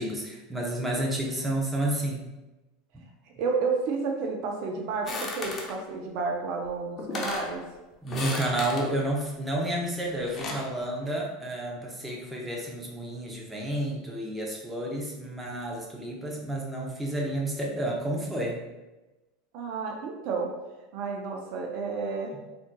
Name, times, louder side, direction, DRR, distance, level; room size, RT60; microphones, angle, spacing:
voice 1, 0.0-2.3 8.0-18.6, right 1 dB, 10° right, -2 dB, 0.7 m, -30 dB
voice 2, 3.4-7.6 19.5-20.5 20.9-22.3, right 4 dB, 60° right, 1 dB, 0.5 m, -31 dB
sound 1, 5.1-5.8 6.7-6.8 7.0-7.5 8.1-8.9 10.0-10.7, left 2 dB, 35° left, 0.7 m, -34 dB
3.7 x 2.6 x 2.2 m, 1.1 s
hypercardioid pair, 100°, 0 cm